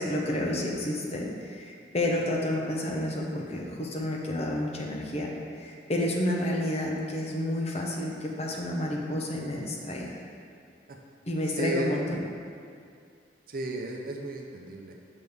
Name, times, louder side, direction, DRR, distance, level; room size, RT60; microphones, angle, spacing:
voice 1, 0.0-5.3 5.6-10.2 11.3-12.2, left 1 dB, 35° left, -1 dB, 0.7 m, -30 dB
voice 2, 11.5-12.0 13.5-14.9, right 1 dB, 50° right, 1 dB, 0.6 m, -33 dB
6.2 x 5.3 x 3.5 m, 2.4 s
head